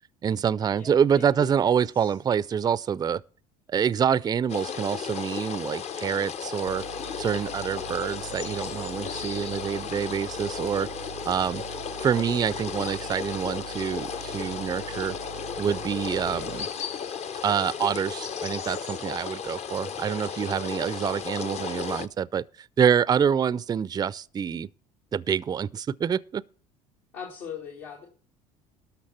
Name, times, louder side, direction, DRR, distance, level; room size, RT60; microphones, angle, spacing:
voice 1, 0.2-3.2 3.7-6.8 7.2-10.9 11.2-11.6 12.0-15.2 15.6-16.7 17.4-24.7 25.1-26.4, right 7 dB, 25° right, 0.4 m, -26 dB
voice 2, 0.7-2.1 27.1-28.1, left 7 dB, 75° left, 2.2 m, -41 dB
sound 1, 4.5-22.1, left 7 dB, 40° left, 0.7 m, -35 dB
sound 2, 6.7-16.7, right 14 dB, 90° right, 0.4 m, -43 dB
12.5 x 5.9 x 5.6 m
hypercardioid pair, 70°, 17 cm